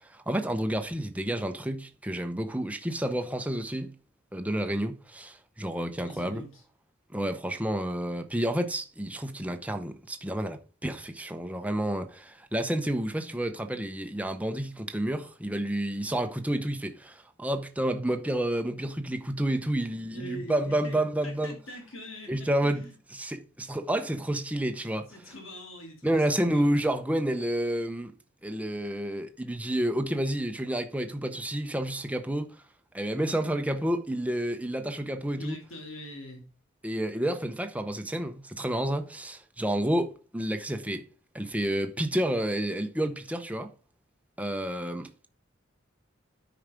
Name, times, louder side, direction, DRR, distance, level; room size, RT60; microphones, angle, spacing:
voice 1, 0.3-3.9 4.3-6.4 7.1-21.6 22.3-22.8 23.1-25.3 26.0-28.1 28.4-32.5 32.9-35.6 36.8-41.0 41.3-43.7 44.4-45.3, right 1 dB, 5° right, 0.8 m, -30 dB
voice 2, 6.0-6.6 20.1-22.9 25.1-26.7 35.3-36.5, equal, 80° left, 2.9 m, -43 dB
9.4 x 4.8 x 5.1 m
head